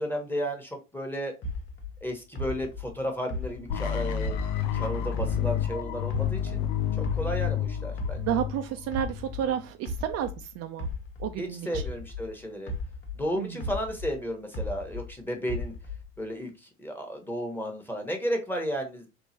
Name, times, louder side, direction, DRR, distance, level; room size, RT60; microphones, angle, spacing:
voice 1, 0.0-1.3 2.0-4.4 4.7-6.6 7.0-8.2 11.4-12.7 13.1-15.7 16.2-19.1, equal, 5° left, 3 dB, 1.1 m, -33 dB
sound 1, 1.4-4.8 5.2-7.6 8.0-12.3 12.7-15.1 15.5-16.2, left 2 dB, 35° left, 0.9 m, -36 dB
sound 2, 3.7-9.6, left 9 dB, 65° left, 0.6 m, -30 dB
voice 2, 8.2-10.3 10.6-10.9 11.2-11.8 13.4-13.6, right 10 dB, 50° right, 7 dB, 0.5 m, -31 dB
3.7 x 2.5 x 2.8 m, 0.28 s
hypercardioid pair, 75°, 33 cm